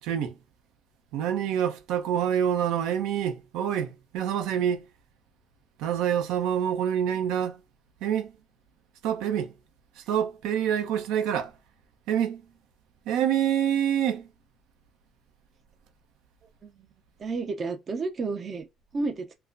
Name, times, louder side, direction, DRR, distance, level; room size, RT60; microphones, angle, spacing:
voice 1, 0.0-0.4 1.1-4.9 5.8-7.6 8.0-8.3 9.0-9.5 9.9-11.6 12.1-12.4 13.0-14.3, right 9 dB, 85° right, 0.8 m, -26 dB
voice 2, 17.2-18.7 18.9-19.3, right 3 dB, 40° right, 0.6 m, -31 dB
4.6 x 2.1 x 2.5 m
cardioid pair, 90°, 0 cm